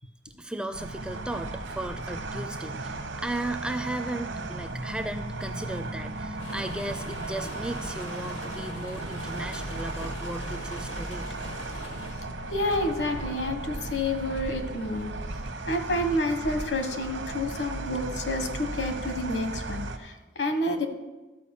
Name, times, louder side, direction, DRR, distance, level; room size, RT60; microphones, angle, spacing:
voice 1, 0.0-11.3, right 1 dB, 5° right, 8 dB, 0.4 m, -36 dB
sound 1, 0.7-20.0, right 2 dB, 80° right, 1.0 m, -36 dB
sound 2, 6.4-12.1, left 1 dB, 85° left, 1.8 m, -42 dB
voice 2, 12.5-15.1 15.7-20.9, left 1 dB, 65° left, 6 dB, 1.3 m, -29 dB
13.0 x 4.9 x 7.1 m, 1.1 s
head